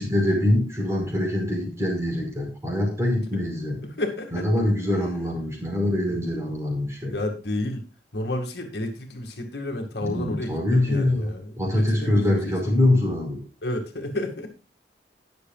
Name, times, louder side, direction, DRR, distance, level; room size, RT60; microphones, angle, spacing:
voice 1, 0.0-3.8 4.3-7.1 10.0-11.3 11.6-13.4, left 1 dB, 15° right, 0 dB, 5.0 m, -24 dB
voice 2, 3.8-4.5 7.0-7.8 8.1-12.5 13.6-14.5, left 1 dB, 65° left, 3 dB, 2.1 m, -31 dB
20.0 x 6.8 x 2.4 m, 0.34 s
head